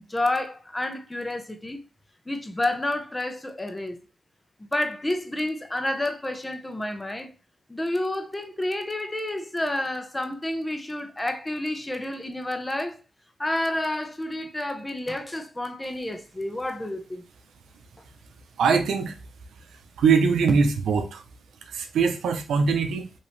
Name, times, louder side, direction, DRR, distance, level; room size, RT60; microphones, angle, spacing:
voice 1, 0.1-1.8 2.3-4.0 4.6-7.3 7.7-13.0 13.4-17.2, left 1 dB, 15° left, 0.9 m, -29 dB
voice 2, 18.6-19.2 20.0-21.2 21.7-23.1, right 5 dB, 85° right, 0.7 m, -22 dB
5.6 x 2.9 x 3.2 m
cardioid pair, 70°, 0 cm